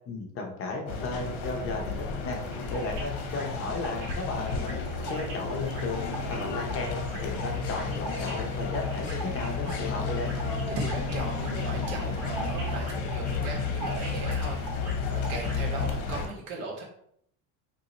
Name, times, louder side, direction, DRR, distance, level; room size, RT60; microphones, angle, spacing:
voice 1, 0.0-2.4 2.7-4.8 5.1-6.0 6.3-10.3, left 3 dB, 35° left, 1 dB, 0.8 m, -34 dB
sound 1, 0.9-16.3, left 4 dB, 60° left, 0.9 m, -32 dB
sound 2, 2.4-15.5, right 1 dB, 65° right, 1.5 m, -41 dB
voice 2, 10.7-14.6 15.1-16.8, right 3 dB, 85° right, -1 dB, 1.4 m, -38 dB
3.0 x 2.7 x 4.0 m, 0.70 s
cardioid pair, 155°, 38 cm